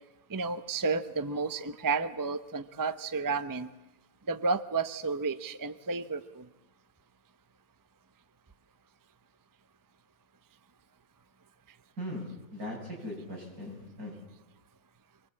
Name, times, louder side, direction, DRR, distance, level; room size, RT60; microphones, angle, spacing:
voice 1, 0.3-3.7 4.3-6.4, right 4 dB, 20° right, 12 dB, 0.6 m, -31 dB
voice 2, 12.0-14.1, left 1 dB, 80° right, -1 dB, 8.2 m, -39 dB
25.0 x 20.5 x 8.6 m, 1.0 s
omnidirectional pair, 1.6 m